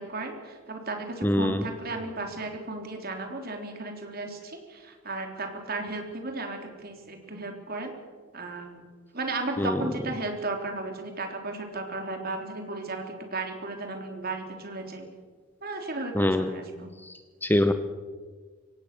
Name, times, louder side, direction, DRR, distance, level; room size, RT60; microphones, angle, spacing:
voice 1, 0.0-7.9 8.3-8.8 9.1-15.1 15.6-16.9, right 2 dB, 50° right, 4 dB, 3.5 m, -35 dB
voice 2, 1.2-1.6 9.6-9.7 16.2-16.5 17.4-17.7, left 1 dB, 10° left, 9 dB, 0.8 m, -23 dB
24.5 x 17.0 x 6.8 m, 1.5 s
head